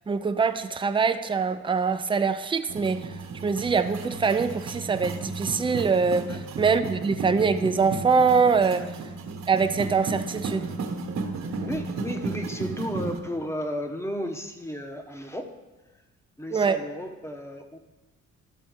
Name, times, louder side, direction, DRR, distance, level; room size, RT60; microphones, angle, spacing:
voice 1, 0.1-3.1 3.4-8.9 9.5-10.7 16.5-16.8, right 5 dB, 15° right, 9 dB, 0.5 m, -24 dB
sound 1, 2.7-13.2, right 4 dB, 65° right, 1.3 m, -34 dB
voice 2, 11.4-15.5 16.4-17.8, equal, 10° left, 5 dB, 1.0 m, -34 dB
12.0 x 4.2 x 6.3 m, 1.2 s
cardioid pair, 90°, 30 cm